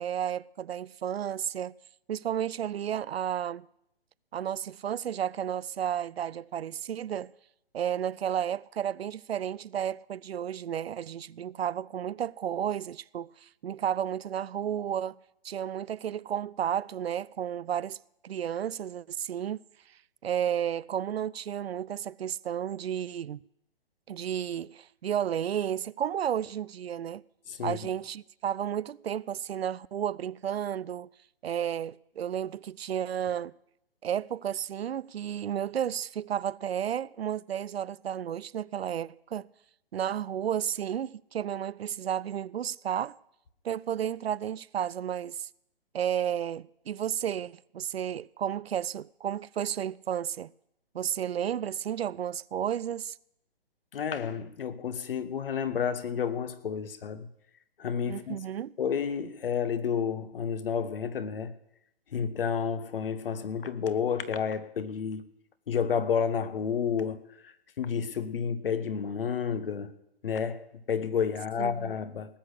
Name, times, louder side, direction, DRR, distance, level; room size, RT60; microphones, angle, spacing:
voice 1, 0.0-1.7 2.1-3.6 4.3-7.3 7.7-15.2 15.4-18.0 18.2-19.6 20.2-23.4 24.1-27.2 27.6-31.1 31.4-33.5 34.0-39.5 39.9-43.2 43.6-45.5 45.9-50.5 50.9-53.2 58.1-58.7 71.6-71.9, right 9 dB, 80° right, 0.5 m, -32 dB
voice 2, 27.5-27.8 53.9-57.3 57.8-58.4 58.8-61.5 62.1-65.2 65.7-69.9 70.2-72.4, left 7 dB, 65° left, 1.3 m, -30 dB
18.5 x 6.5 x 8.2 m
figure-of-eight pair, 135°, 30 cm